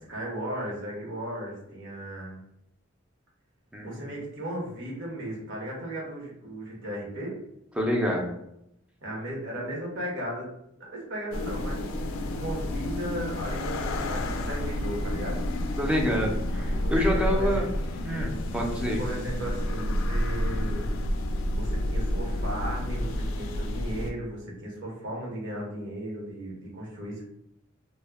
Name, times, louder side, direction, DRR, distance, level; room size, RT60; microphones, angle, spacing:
voice 1, 0.0-2.4 3.8-7.4 9.0-10.5 10.8-15.4 16.7-17.6 18.7-20.9 21.5-27.2, right 1 dB, 60° right, -2 dB, 0.9 m, -36 dB
voice 2, 3.7-4.0 7.8-8.3 15.8-17.7 18.0-19.0, equal, 5° right, 0 dB, 0.4 m, -27 dB
sound 1, 11.3-24.1, left 1 dB, 75° left, 0.3 m, -30 dB
2.1 x 2.1 x 3.3 m, 0.79 s
head